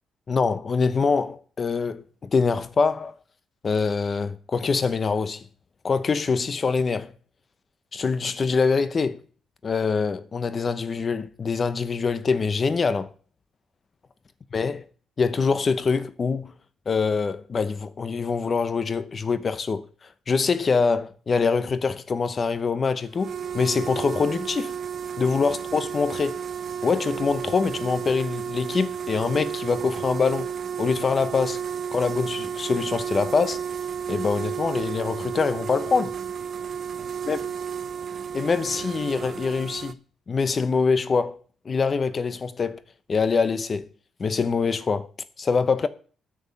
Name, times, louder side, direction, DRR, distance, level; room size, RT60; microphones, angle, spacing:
voice 1, 0.3-3.1 3.6-5.4 5.8-7.1 7.9-9.2 9.6-13.1 14.5-14.8 15.2-16.5 16.9-19.8 20.3-24.7 25.2-26.4 26.8-30.5 30.8-31.6 31.9-33.6 34.1-36.1 37.2-37.4 38.3-40.0 40.3-41.4 41.6-42.8 43.1-43.9 44.2-45.1 45.4-45.9, left 5 dB, 40° left, 0.9 m, -24 dB
sound 1, 23.1-39.9, right 7 dB, 50° right, 0.6 m, -32 dB
9.8 x 6.2 x 8.5 m
cardioid pair, 90°, 0 cm